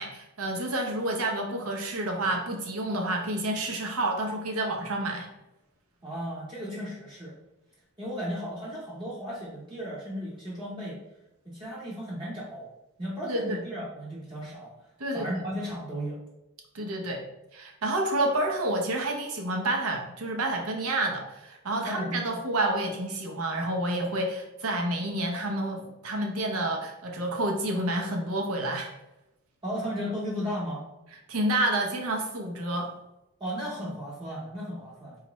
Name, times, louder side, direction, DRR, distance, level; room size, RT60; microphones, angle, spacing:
voice 1, 0.0-5.3 13.2-13.6 15.0-15.3 16.7-17.2 17.5-28.9 31.3-32.9, right 1 dB, 90° right, 1 dB, 0.7 m, -29 dB
voice 2, 6.0-7.4 8.0-11.0 11.4-12.7 13.0-14.7 15.1-16.2 21.8-22.4 29.6-30.8 33.4-35.2, equal, 20° right, -6 dB, 0.6 m, -35 dB
4.1 x 2.4 x 3.0 m, 0.93 s
head